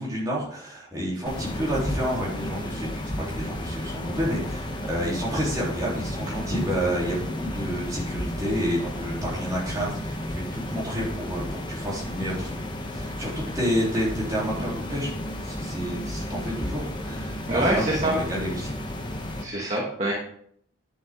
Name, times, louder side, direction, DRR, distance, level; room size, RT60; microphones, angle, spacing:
voice 1, 0.0-12.5 12.9-15.1 15.4-18.8, equal, 15° right, -6 dB, 3.3 m, -29 dB
sound 1, 1.2-19.4, left 1 dB, 20° left, 1.0 m, -33 dB
voice 2, 17.5-18.2 19.4-20.1, right 1 dB, 30° right, -2 dB, 1.4 m, -25 dB
10.5 x 6.5 x 3.7 m, 0.64 s
head